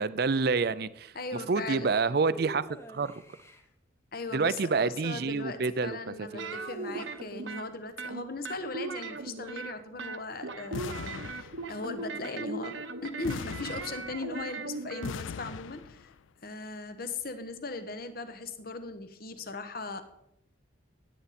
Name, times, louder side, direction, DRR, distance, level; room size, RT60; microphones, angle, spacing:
voice 1, 0.0-1.1 1.5-3.2 4.3-6.5, right 4 dB, 50° right, 0.5 m, -28 dB
voice 2, 1.1-1.9 4.1-16.1 16.4-20.0, left 3 dB, 50° left, 1.1 m, -38 dB
sound 1, 2.3-3.7 6.2-7.4, right 1 dB, 15° left, 0.9 m, -46 dB
sound 2, 6.4-7.6 8.0-9.7 10.0-15.1, right 3 dB, 75° right, 1.0 m, -38 dB
sound 3, 10.7-12.0 13.2-14.5 15.0-16.1, left 6 dB, 75° left, 0.4 m, -40 dB
16.5 x 9.1 x 4.3 m
head